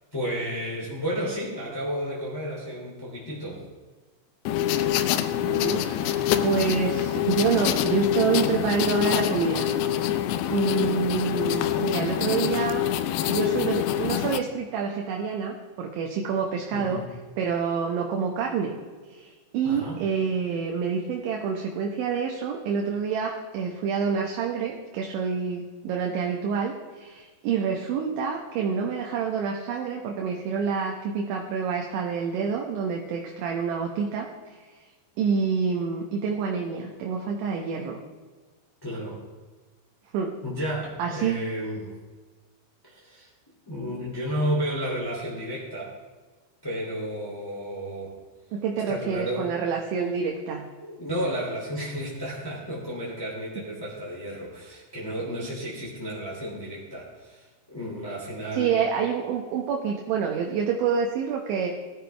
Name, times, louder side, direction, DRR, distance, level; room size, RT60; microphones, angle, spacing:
voice 1, 0.1-3.6 16.7-17.1 19.6-20.0 38.8-39.2 40.4-41.9 42.8-43.3 43.6-45.9 46.6-48.1 48.9-49.5 50.8-58.7, equal, 10° left, -6 dB, 1.5 m, -32 dB
sound 1, 4.5-14.4, left 11 dB, 85° left, 2.4 m, -25 dB
voice 2, 5.4-9.7 10.1-10.2 10.5-12.9 13.3-17.0 17.4-18.7 19.1-34.3 35.2-38.0 40.1-40.3 41.0-41.4 48.5-50.6 58.5-61.7, right 6 dB, 75° right, 1 dB, 3.2 m, -27 dB
19.5 x 13.0 x 3.4 m, 1.4 s
omnidirectional pair, 5.7 m